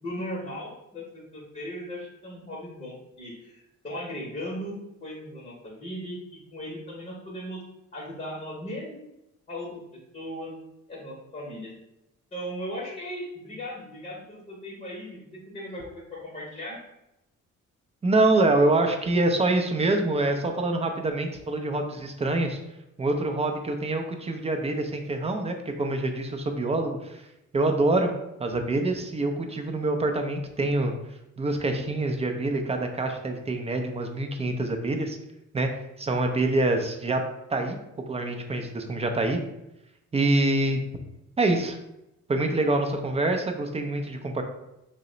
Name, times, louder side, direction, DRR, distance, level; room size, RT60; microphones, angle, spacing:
voice 1, 0.0-7.6 7.9-9.1 9.5-10.5 10.9-11.7 12.3-16.8, equal, 25° left, -4 dB, 0.8 m, -37 dB
voice 2, 18.0-22.6 23.0-27.2 27.5-28.1 28.4-30.9 31.4-35.2 35.5-35.7 36.0-37.2 37.5-37.8 38.1-39.4 40.1-40.9 41.4-41.8 42.3-44.4, right 2 dB, 20° right, 4 dB, 0.4 m, -25 dB
2.8 x 2.1 x 3.8 m, 0.89 s
cardioid pair, 90°, 30 cm